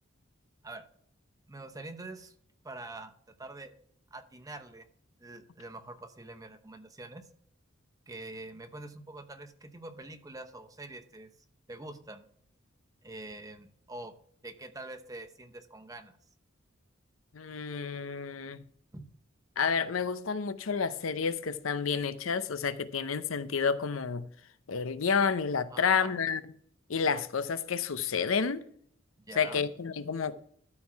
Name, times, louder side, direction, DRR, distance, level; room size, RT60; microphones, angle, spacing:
voice 1, 1.5-2.3 2.6-3.7 4.1-4.9 5.2-7.2 8.1-11.3 11.7-12.3 13.0-14.1 14.4-16.2 18.9-19.1 25.7-26.2 29.2-29.6, right 2 dB, 20° right, 0.8 m, -45 dB
voice 2, 17.3-18.6 19.6-24.3 24.7-26.4 26.9-28.6 29.3-30.4, left 6 dB, 80° left, 0.7 m, -30 dB
13.0 x 4.6 x 5.8 m
head